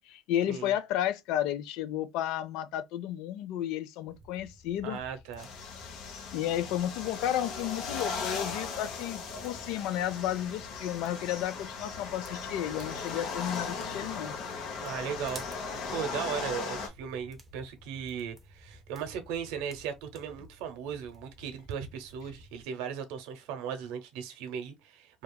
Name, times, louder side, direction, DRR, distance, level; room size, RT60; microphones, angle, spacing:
voice 1, 0.1-5.0 6.3-14.3, left 11 dB, 75° left, 0.4 m, -32 dB
sound 1, 4.1-22.6, equal, 15° right, 0.6 m, -54 dB
voice 2, 4.8-5.5 14.8-15.4 15.9-25.2, right 7 dB, 85° right, 0.7 m, -37 dB
sound 2, 5.4-16.9, left 5 dB, 60° left, 0.8 m, -38 dB
2.8 x 2.4 x 2.2 m
cardioid pair, 140°, 0 cm